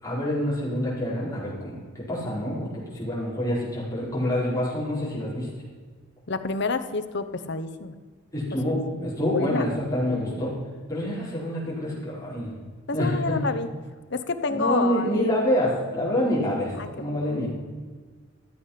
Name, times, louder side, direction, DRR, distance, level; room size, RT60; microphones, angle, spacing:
voice 1, 0.0-5.5 8.3-10.5 10.9-12.5 12.9-13.4 14.5-17.5, left 1 dB, 15° left, -7 dB, 4.7 m, -27 dB
voice 2, 6.3-7.9 8.9-9.7 10.1-10.5 12.9-13.7 14.1-15.4 16.8-17.1, left 3 dB, 60° left, 10 dB, 0.8 m, -29 dB
14.0 x 8.3 x 5.7 m, 1.5 s
head